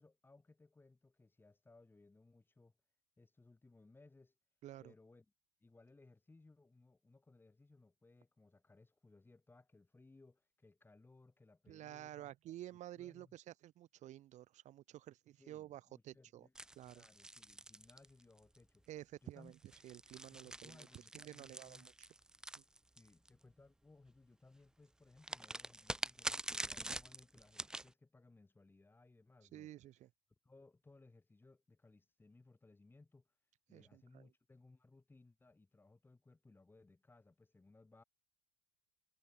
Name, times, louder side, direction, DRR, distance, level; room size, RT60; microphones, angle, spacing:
voice 1, 0.0-2.7 3.2-4.3 4.8-5.3 5.6-12.3 12.7-13.4 15.4-16.5 16.8-18.9 19.2-19.5 20.3-21.9 22.9-29.7 30.4-33.3 33.7-38.0, left 3 dB, 15° left, 7.3 m, -64 dB
voice 2, 4.6-4.9 11.7-16.5 16.7-17.0 18.9-19.5 19.8-20.8 21.1-21.9 22.6-22.7 29.4-30.1 33.7-34.3, right 13 dB, 50° right, 1.6 m, -52 dB
sound 1, 16.5-18.6 19.5-23.3 25.2-27.9, right 1 dB, 5° right, 0.3 m, -45 dB
hypercardioid pair, 90°, 16 cm